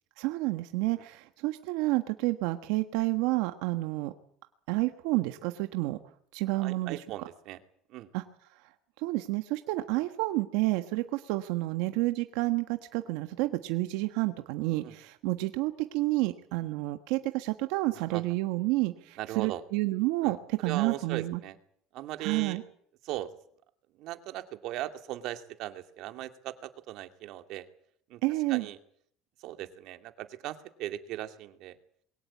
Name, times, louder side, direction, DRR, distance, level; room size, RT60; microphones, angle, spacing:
voice 1, 0.2-4.1 4.7-6.0 6.3-7.0 8.1-8.2 9.0-21.4 22.2-22.6 28.2-28.7, right 19 dB, 85° right, 8 dB, 1.4 m, -30 dB
voice 2, 6.5-7.6 7.9-8.1 14.8-15.0 17.9-18.2 19.2-19.6 20.2-20.4 20.6-21.6 21.9-22.6 23.0-23.3 23.9-27.7 28.1-28.2 28.5-28.8 29.4-31.8, right 14 dB, 65° right, 8 dB, 2.3 m, -38 dB
22.5 x 18.0 x 8.5 m, 0.64 s
cardioid pair, 125°, 0 cm